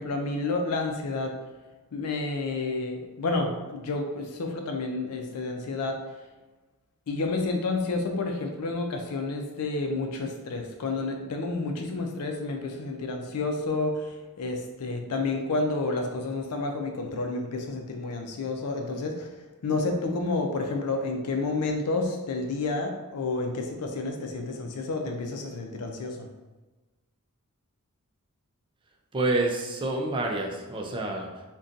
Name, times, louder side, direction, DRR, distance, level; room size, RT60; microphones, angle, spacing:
voice 1, 0.0-1.3 1.9-6.0 7.1-19.3 19.6-26.3, left 3 dB, 80° left, 3 dB, 0.5 m, -30 dB
voice 2, 29.1-31.4, right 2 dB, 20° right, 1 dB, 0.4 m, -28 dB
2.6 x 2.2 x 3.7 m, 1.2 s
head